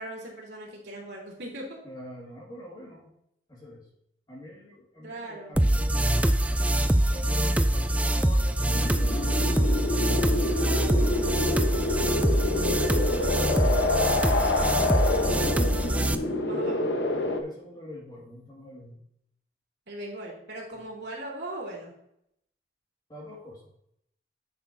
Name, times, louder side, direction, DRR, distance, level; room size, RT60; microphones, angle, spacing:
voice 1, 0.0-1.8 5.0-5.5 16.4-16.9 19.9-21.9, right 1 dB, 80° right, -3 dB, 2.8 m, -39 dB
voice 2, 1.8-3.1 3.5-3.9 4.3-6.2 7.1-11.7 12.2-14.9 16.2-19.0 20.7-20.9 23.1-23.6, left 1 dB, 20° left, -4 dB, 2.0 m, -45 dB
sound 1, 5.6-16.1, right 1 dB, 10° right, 0.3 m, -24 dB
sound 2, 8.6-17.4, left 2 dB, 85° left, 1.0 m, -27 dB
10.0 x 6.2 x 2.7 m, 0.75 s
head